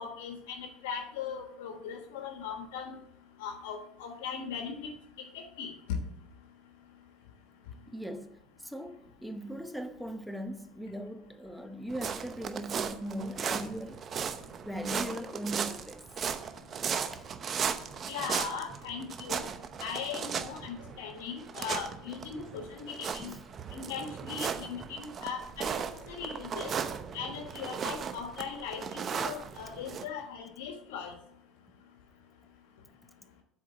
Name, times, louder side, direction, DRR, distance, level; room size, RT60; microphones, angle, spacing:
voice 1, 0.0-3.0 3.4-4.9 5.3-5.7 18.1-19.5 19.8-23.3 23.7-26.7 27.1-31.1, left 6 dB, 85° left, 1.3 m, -39 dB
voice 2, 7.9-14.0 14.6-16.0 17.1-17.3 23.2-23.4 24.8-24.9, equal, ahead, 0.8 m, -39 dB
sound 1, 11.9-30.0, right 7 dB, 40° right, 0.8 m, -36 dB
7.9 x 4.6 x 7.1 m
supercardioid pair, 100°, 0 cm